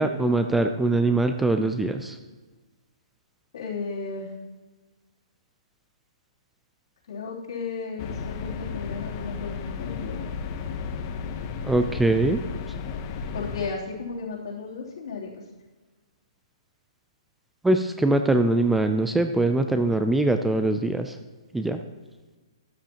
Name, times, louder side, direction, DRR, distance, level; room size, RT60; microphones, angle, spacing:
voice 1, 0.0-2.2 11.6-12.4 17.6-21.2 21.5-21.8, right 2 dB, 5° right, 7 dB, 0.4 m, -22 dB
voice 2, 3.5-4.3 7.1-10.2 13.3-15.3, left 4 dB, 65° left, -5 dB, 3.0 m, -34 dB
sound 1, 8.0-13.7, left 5 dB, 30° left, 0.8 m, -33 dB
13.0 x 9.4 x 2.9 m, 1.3 s
hypercardioid pair, 155°, 3 cm